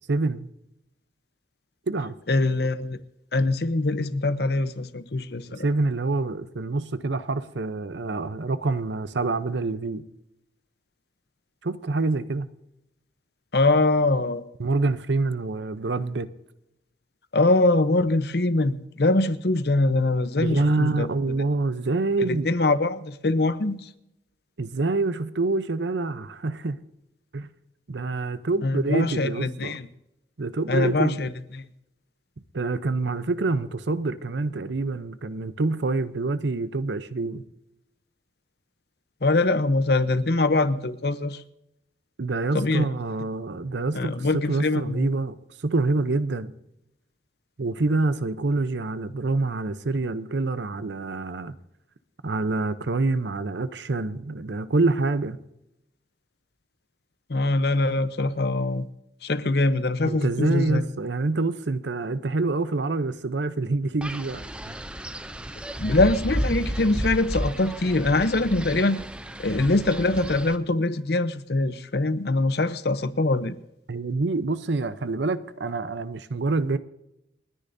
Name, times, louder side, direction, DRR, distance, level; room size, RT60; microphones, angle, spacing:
voice 1, 0.1-0.5 1.9-2.2 5.6-10.0 11.6-12.5 14.6-16.3 20.4-22.6 24.6-26.8 27.3-27.5 27.9-29.8 30.4-31.2 32.5-37.4 42.2-46.5 47.6-51.5 52.2-55.4 60.1-64.8 73.9-76.8, right 3 dB, 75° right, 0.7 m, -26 dB
voice 2, 2.3-3.0 3.3-5.7 13.5-14.4 17.3-21.1 22.3-23.9 28.6-29.9 30.7-31.7 39.2-41.4 42.5-42.9 43.9-45.1 57.3-58.9 59.2-60.8 65.8-69.0 69.4-73.6, left 2 dB, 60° left, 0.8 m, -23 dB
Wind, 64.0-70.6, equal, 5° right, 0.5 m, -32 dB
30.0 x 10.0 x 2.7 m
head